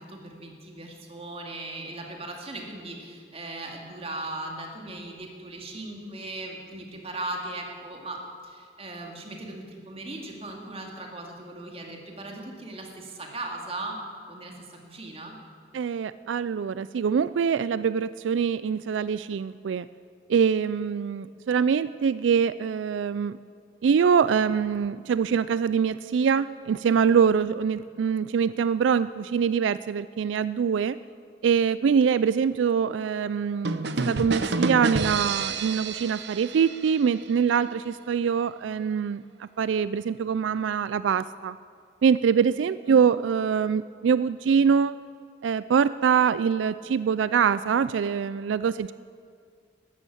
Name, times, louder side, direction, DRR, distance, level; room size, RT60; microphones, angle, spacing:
voice 1, 0.0-14.0 14.3-14.5 14.8-15.3 42.9-43.2, right 2 dB, 35° right, 1 dB, 2.3 m, -38 dB
voice 2, 15.7-19.9 20.3-23.4 23.8-31.0 31.4-33.8 34.1-41.6 42.0-44.9 45.4-48.9, right 6 dB, 90° right, 15 dB, 0.3 m, -24 dB
sound 1, 33.6-37.4, right 3 dB, 65° right, 0.8 m, -29 dB
13.5 x 12.0 x 8.5 m, 2.1 s
head